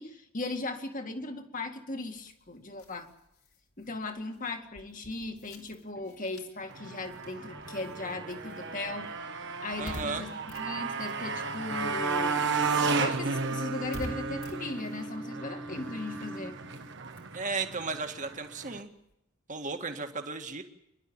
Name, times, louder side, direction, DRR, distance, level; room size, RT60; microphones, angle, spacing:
voice 1, 0.0-3.1 3.8-9.1 9.6-16.6, left 2 dB, 35° left, 5 dB, 2.1 m, -38 dB
sound 1, 2.0-11.9 12.2-19.1, left 1 dB, 75° left, 3.4 m, -50 dB
sound 2, 5.9-17.0, right 1 dB, 10° left, 1.3 m, -45 dB
Motorcycle, 6.7-18.8, right 4 dB, 55° right, 1.4 m, -34 dB
voice 2, 9.8-10.3 17.3-18.9 19.5-20.6, right 4 dB, 35° right, 5 dB, 1.9 m, -35 dB
29.0 x 12.0 x 8.8 m, 0.81 s
head